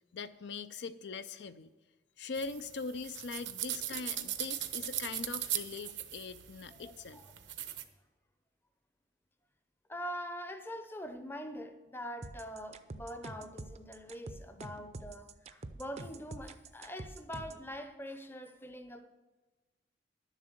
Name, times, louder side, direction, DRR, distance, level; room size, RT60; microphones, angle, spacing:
voice 1, 0.1-1.7 2.2-7.2, left 4 dB, 70° left, 0.5 m, -42 dB
sound 1, 2.3-7.8, right 12 dB, 80° right, 0.8 m, -39 dB
voice 2, 6.8-7.3 9.9-19.1, equal, 10° left, 0.6 m, -44 dB
sound 2, 12.2-17.7, right 2 dB, 35° right, 0.5 m, -46 dB
11.0 x 7.3 x 6.6 m
head